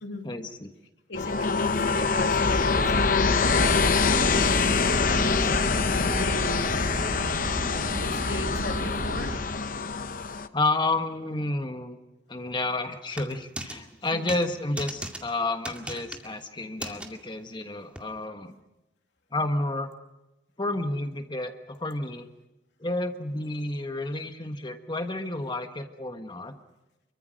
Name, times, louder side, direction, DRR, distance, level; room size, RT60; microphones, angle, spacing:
voice 1, 0.2-0.7 5.0-5.6 10.5-12.0 12.3-18.5 19.3-19.9 20.6-22.3 22.8-26.6, left 2 dB, 25° left, 6 dB, 1.5 m, -30 dB
voice 2, 1.1-4.0 5.0-6.8 8.0-9.3 14.1-14.4, left 1 dB, 80° left, 3 dB, 2.8 m, -36 dB
sound 1, 1.1-10.5, left 4 dB, 50° left, 0.9 m, -25 dB
sound 2, 2.3-9.4, right 1 dB, 85° right, 2.7 m, -33 dB
sound 3, 13.1-13.8 14.3-14.5 14.8-15.2 15.6-16.3 16.8-17.1 18.0-18.1, right 1 dB, 5° right, 2.1 m, -36 dB
25.0 x 23.5 x 6.4 m, 1.0 s
head